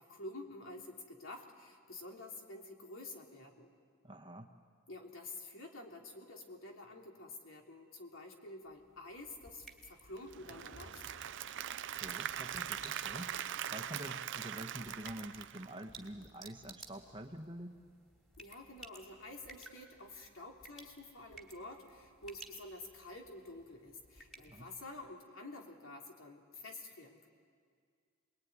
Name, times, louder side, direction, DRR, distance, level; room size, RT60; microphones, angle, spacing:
voice 1, 0.0-3.7 4.9-11.3 18.4-27.3, left 2 dB, 65° left, 1 dB, 3.3 m, -49 dB
voice 2, 4.0-4.5 11.7-13.3 13.7-17.8 24.5-24.7, right 1 dB, 25° right, 5 dB, 1.3 m, -47 dB
sound 1, 8.7-25.1, right 2 dB, ahead, 2.8 m, -57 dB
Applause / Crowd, 10.2-16.2, right 10 dB, 55° right, 0.6 m, -42 dB
28.0 x 21.5 x 9.7 m, 2.1 s
head